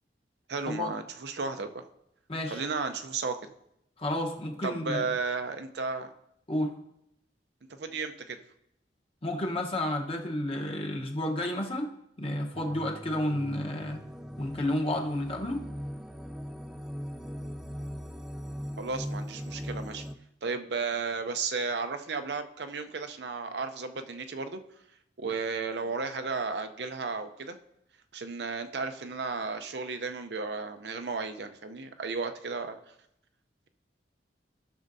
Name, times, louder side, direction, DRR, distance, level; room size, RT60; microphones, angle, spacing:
voice 1, 0.5-1.8 2.5-3.4 4.6-6.1 7.8-8.4 18.8-20.0 20.4-24.6 25.2-27.6 28.1-32.8, right 4 dB, 65° right, 7 dB, 0.6 m, -34 dB
voice 2, 2.3-2.6 4.0-5.0 6.5-6.8 9.2-11.9 12.2-14.0 14.4-15.6, left 1 dB, 30° left, 1 dB, 1.0 m, -31 dB
sound 1, 12.5-20.2, equal, 5° right, 0.3 m, -40 dB
15.0 x 6.4 x 2.7 m, 0.79 s
head